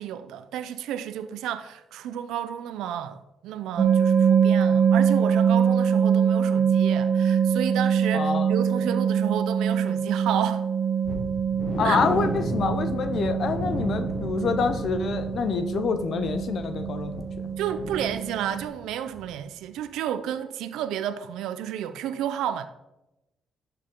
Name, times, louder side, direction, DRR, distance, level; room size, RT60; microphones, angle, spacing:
voice 1, 0.0-10.7 11.8-12.0 17.6-22.7, right 10 dB, 90° right, 0.6 m, -31 dB
sound 1, 3.8-18.7, right 7 dB, 50° right, 1.0 m, -24 dB
voice 2, 8.1-8.5 11.8-17.5, left 5 dB, 60° left, 0.7 m, -27 dB
sound 2, 11.0-18.8 19.1-19.3 19.7-19.8, left 1 dB, 45° left, 3.6 m, -35 dB
11.5 x 6.6 x 3.8 m
cardioid pair, 90°, 0 cm